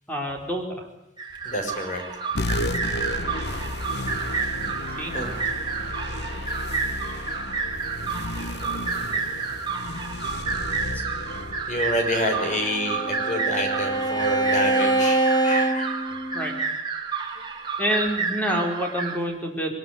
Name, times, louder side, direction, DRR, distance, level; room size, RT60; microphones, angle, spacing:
voice 1, 0.1-0.9 5.0-5.1 10.9-11.2 16.3-16.5 17.8-19.7, equal, 10° left, 2 dB, 4.7 m, -27 dB
sound 1, 1.2-19.2, right 5 dB, 25° right, 3.1 m, -30 dB
voice 2, 1.4-2.0 5.1-5.3 8.9-9.0 9.4-9.5 11.7-16.1, equal, 45° left, 5 dB, 5.7 m, -28 dB
sound 2, 2.3-13.2, left 2 dB, 75° left, 1.1 m, -33 dB
Bowed string instrument, 12.2-16.7, right 2 dB, 25° left, 2.1 m, -25 dB
22.5 x 21.5 x 9.6 m, 0.86 s
head